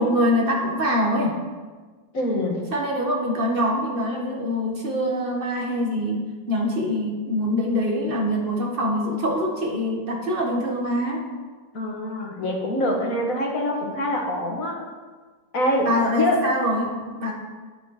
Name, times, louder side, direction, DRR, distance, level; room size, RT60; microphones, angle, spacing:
voice 1, 0.0-1.4 2.7-6.2 6.5-11.2 15.8-16.9 17.2-17.3, equal, 30° right, -1 dB, 1.9 m, -24 dB
voice 2, 2.1-2.6 11.7-14.8 15.5-15.9 16.1-16.4, left 1 dB, 50° left, -1 dB, 2.0 m, -24 dB
10.0 x 9.0 x 5.0 m, 1.4 s
omnidirectional pair, 1.9 m